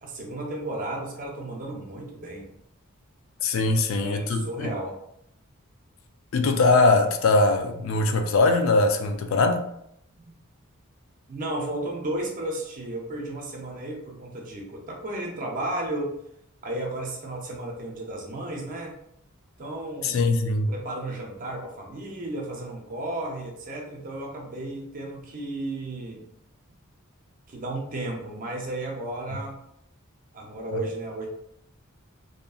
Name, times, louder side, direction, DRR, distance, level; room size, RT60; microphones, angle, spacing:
voice 1, 0.0-2.5 3.5-4.9 10.2-10.4 11.3-16.1 16.6-19.0 19.6-20.3 20.7-26.2 27.5-29.6 30.3-31.3, right 1 dB, 40° right, 0.5 m, -34 dB
voice 2, 3.4-4.7 6.3-9.7 20.0-20.7 30.7-30.8, left 3 dB, 65° left, 0.3 m, -21 dB
2.7 x 2.6 x 2.3 m
head